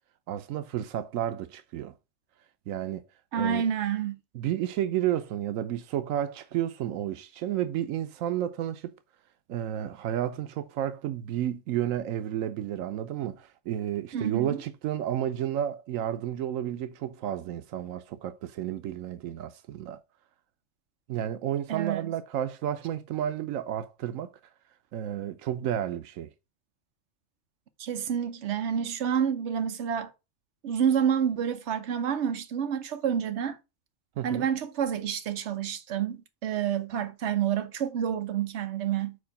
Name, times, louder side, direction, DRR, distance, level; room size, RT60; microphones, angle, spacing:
voice 1, 0.3-1.9 2.7-3.0 3.3-3.7 4.3-8.9 9.5-20.0 21.1-24.3 24.9-26.3 34.2-34.5, right 11 dB, 90° right, 1.0 m, -31 dB
voice 2, 3.3-4.2 14.1-14.6 21.7-22.1 27.8-30.1 30.6-33.6 34.2-39.2, right 8 dB, 60° right, 1.1 m, -28 dB
4.9 x 4.5 x 5.6 m
omnidirectional pair, 1.3 m